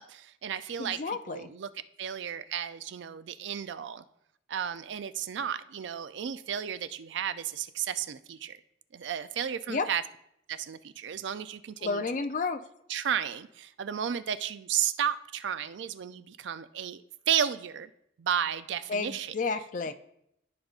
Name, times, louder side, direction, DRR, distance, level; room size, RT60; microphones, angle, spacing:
voice 1, 0.0-1.7 2.0-4.0 4.5-8.6 8.9-10.0 10.5-12.0 12.9-17.9 18.2-19.3, right 8 dB, 70° right, 13 dB, 0.4 m, -33 dB
voice 2, 0.8-1.4 9.7-9.9 11.8-12.6 18.9-19.9, left 4 dB, 40° left, 11 dB, 0.4 m, -31 dB
14.0 x 5.0 x 2.4 m, 0.76 s
head